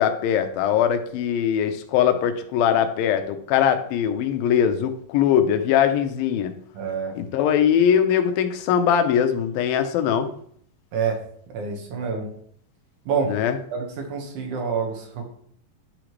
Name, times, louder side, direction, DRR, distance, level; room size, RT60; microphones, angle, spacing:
voice 1, 0.0-6.5 7.2-10.3 13.3-13.6, left 9 dB, 85° left, 7 dB, 2.5 m, -21 dB
voice 2, 6.7-7.2 10.9-11.2 11.5-12.3 13.1-13.3 13.7-15.3, right 5 dB, 65° right, 2 dB, 2.6 m, -27 dB
10.5 x 5.1 x 3.1 m, 0.64 s
omnidirectional pair, 4.0 m